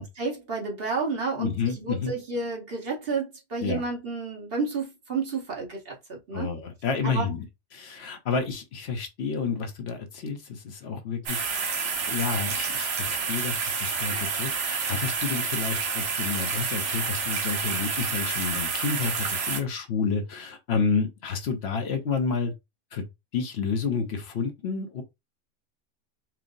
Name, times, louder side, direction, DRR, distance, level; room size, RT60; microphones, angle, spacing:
voice 1, 0.0-6.5 7.0-7.3, right 4 dB, 50° right, 1.3 m, -31 dB
voice 2, 1.4-2.1 3.6-3.8 6.3-7.4 7.7-11.7 12.0-22.5 22.9-23.0 23.3-25.0, left 5 dB, 65° left, 0.9 m, -30 dB
sound 1, 11.3-19.6, right 5 dB, 70° right, 1.2 m, -29 dB
4.4 x 2.0 x 3.8 m
omnidirectional pair, 1.2 m